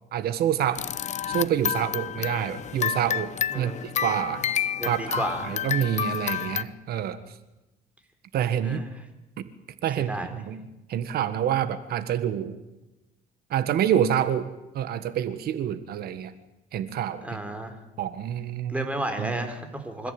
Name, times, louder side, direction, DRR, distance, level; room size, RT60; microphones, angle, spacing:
voice 1, 0.1-0.9 1.3-3.7 4.0-4.5 4.8-7.2 8.3-8.8 9.4-9.5 9.8-10.6 10.9-12.6 13.5-16.3 16.7-17.4 18.0-18.9 19.2-19.4, right 10 dB, 65° right, 12 dB, 1.6 m, -27 dB
sound 1, 0.7-6.6, left 9 dB, 45° left, 0.8 m, -29 dB
voice 2, 3.5-3.9 4.8-5.6 8.6-8.9 10.0-10.3 17.2-17.7 18.7-20.1, right 1 dB, 10° right, 6 dB, 4.0 m, -32 dB
25.5 x 14.5 x 8.9 m, 0.98 s
cardioid pair, 110°, 17 cm